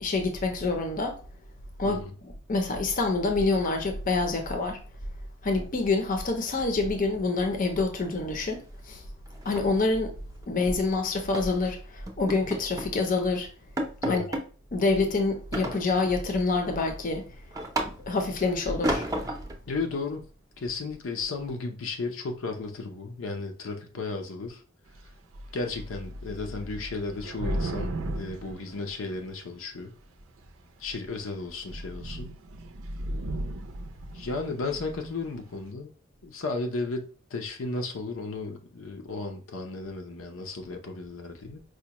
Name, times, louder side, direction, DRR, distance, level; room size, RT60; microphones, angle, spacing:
voice 1, 0.0-1.2 1.8-2.0 2.5-4.8 5.4-8.6 8.9-9.0 9.4-10.1 10.5-13.5 14.1-14.2 14.7-17.3 18.1-19.1, left 3 dB, 45° left, 0.6 m, -26 dB
sound 1, 6.6-7.4 7.7-7.9 8.3-8.5 8.8-8.9 9.3-10.8 11.3-11.6 12.1-13.0 13.3-13.4 13.8-14.5 15.5-16.3 16.7-18.3 18.8-19.6, right 1 dB, 20° right, 0.5 m, -33 dB
voice 2, 19.7-20.3 20.6-24.6 25.5-29.9 30.8-32.4 34.1-35.9 36.2-41.6, left 3 dB, 85° left, 0.6 m, -34 dB
Thunder / Rain, 24.9-25.1 25.3-29.5 30.2-30.6 31.1-31.2 31.5-35.2, right 1 dB, 90° right, 0.5 m, -36 dB
4.8 x 2.2 x 2.9 m
head